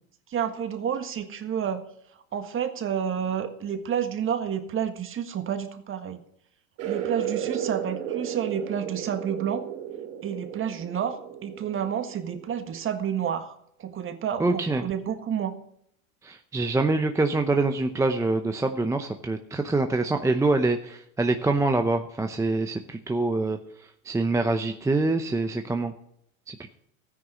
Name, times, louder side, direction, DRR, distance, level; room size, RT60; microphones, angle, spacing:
voice 1, 0.3-1.8 2.3-6.2 6.8-9.6 10.2-15.5, right 8 dB, 30° right, 8 dB, 1.7 m, -30 dB
sound 1, 6.8-12.9, right 9 dB, 60° right, 3.0 m, -34 dB
voice 2, 14.4-14.8 16.2-25.9 26.5-26.7, right 3 dB, 5° right, 6 dB, 0.7 m, -25 dB
13.5 x 9.8 x 6.3 m, 0.72 s
supercardioid pair, 120°, 43 cm